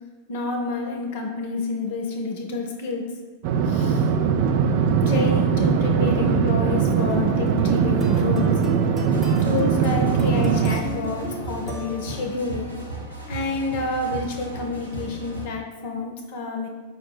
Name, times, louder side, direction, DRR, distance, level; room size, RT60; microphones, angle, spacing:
voice 1, 0.3-3.0 3.7-4.1 5.1-8.5 9.4-12.8 13.3-16.7, left 3 dB, 50° left, 2 dB, 0.7 m, -29 dB
sound 1, 3.4-10.8, right 6 dB, 50° right, 0.3 m, -21 dB
sound 2, 7.0-12.4, equal, 15° right, 0.8 m, -33 dB
sound 3, 9.0-15.5, right 1 dB, 90° left, 0.8 m, -36 dB
5.1 x 2.1 x 4.4 m, 1.3 s
figure-of-eight pair, 90°, 0 cm